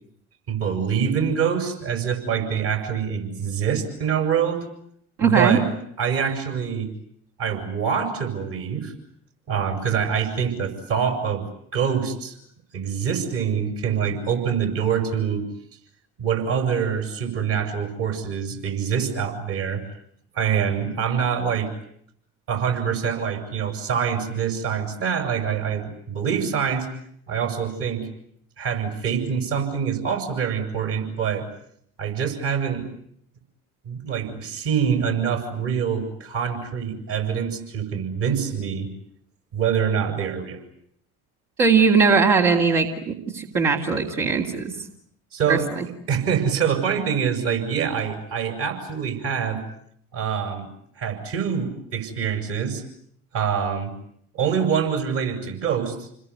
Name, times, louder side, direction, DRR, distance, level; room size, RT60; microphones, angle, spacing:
voice 1, 0.5-4.6 5.2-5.6 6.0-6.9 7.4-8.9 9.5-11.4 11.7-12.4 12.7-15.4 16.2-19.8 20.3-21.7 22.5-26.9 27.3-28.1 28.6-31.4 32.0-32.9 33.8-38.9 39.5-40.6 45.3-45.7 46.1-49.6 50.1-50.7 51.0-52.8 53.3-53.9 54.3-56.1, right 7 dB, 65° right, 6 dB, 6.2 m, -25 dB
voice 2, 5.2-5.6 41.6-44.7 45.5-45.9, right 5 dB, 85° right, -3 dB, 3.2 m, -20 dB
29.0 x 21.5 x 9.6 m, 0.69 s
hypercardioid pair, 60°, 44 cm